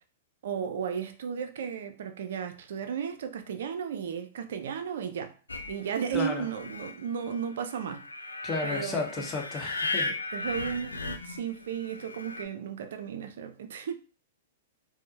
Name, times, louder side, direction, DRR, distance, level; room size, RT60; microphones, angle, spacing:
voice 1, 0.4-5.3 5.7-9.3 10.3-13.9, right 7 dB, 60° right, 0.4 m, -34 dB
sound 1, 5.5-12.4, left 3 dB, 80° left, 0.4 m, -37 dB
voice 2, 6.1-6.5 8.4-10.1, left 3 dB, 25° left, 0.9 m, -33 dB
4.3 x 2.0 x 2.8 m
figure-of-eight pair, 105°, 0 cm